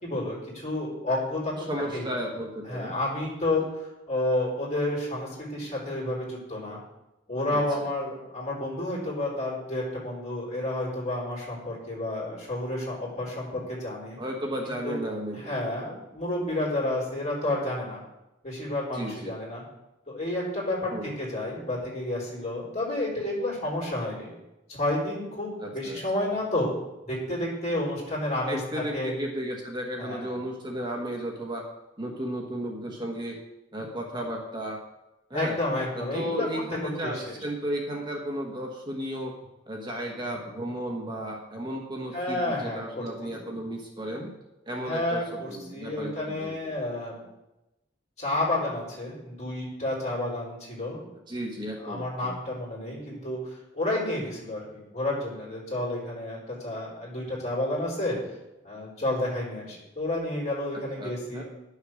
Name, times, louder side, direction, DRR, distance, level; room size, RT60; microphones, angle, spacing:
voice 1, 0.0-1.5 1.9-2.1 2.6-6.8 7.3-14.2 14.7-15.0 15.3-18.0 18.4-19.6 20.1-24.3 24.7-26.7 27.0-29.1 30.0-30.3 35.3-37.4 42.1-43.4 44.8-47.2 48.2-51.0 51.8-58.2 58.6-61.4, left 1 dB, 35° left, -4 dB, 4.3 m, -30 dB
voice 2, 1.6-2.9 7.5-7.9 14.2-15.6 18.9-19.3 20.9-21.2 25.6-26.0 28.5-31.6 32.0-33.4 33.7-34.8 35.3-35.6 35.9-39.3 39.7-44.3 44.7-46.7 51.3-52.3 61.0-61.4, equal, 25° right, 0 dB, 1.2 m, -34 dB
11.0 x 6.6 x 6.3 m, 0.96 s
head